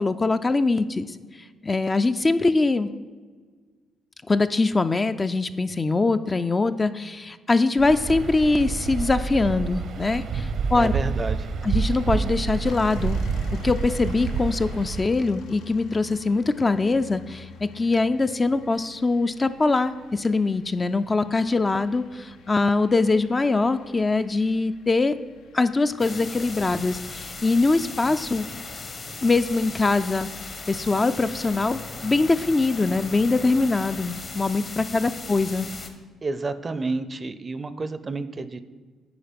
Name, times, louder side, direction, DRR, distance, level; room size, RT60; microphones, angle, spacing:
voice 1, 0.0-2.9 4.3-10.9 11.6-13.2 13.6-25.2 25.5-28.5 29.2-30.3 30.7-35.7, left 3 dB, 25° left, 10 dB, 0.3 m, -23 dB
Waves surf, 7.8-15.1, right 5 dB, 70° right, 0.7 m, -28 dB
voice 2, 10.7-11.5 36.2-38.6, right 3 dB, 30° right, 13 dB, 0.5 m, -30 dB
sound 1, 12.6-31.8, left 5 dB, 80° left, 0.5 m, -47 dB
sound 2, 26.0-35.9, left 3 dB, 40° left, 1.0 m, -37 dB
8.8 x 4.9 x 5.1 m, 1.5 s
cardioid pair, 90°, 0 cm